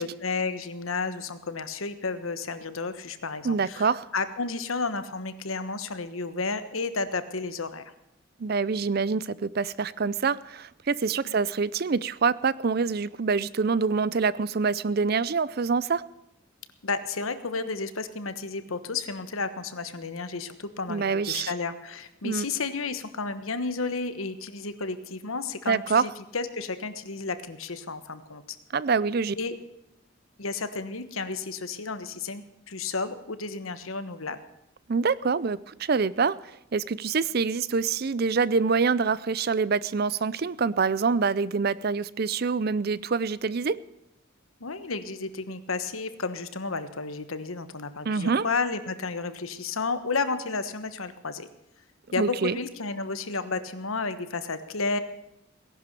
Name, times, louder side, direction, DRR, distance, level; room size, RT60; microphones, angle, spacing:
voice 1, 0.0-7.9 11.2-11.3 16.8-28.4 29.4-29.5 30.4-34.4 44.6-51.5 52.1-55.0, left 4 dB, 85° left, 11 dB, 1.3 m, -32 dB
voice 2, 3.4-4.1 8.4-16.0 20.9-21.5 22.2-22.5 25.7-26.1 28.7-29.4 34.9-36.4 36.7-43.8 48.0-48.5 52.2-52.6, right 5 dB, 50° right, 19 dB, 0.5 m, -25 dB
18.0 x 11.0 x 6.8 m, 0.85 s
head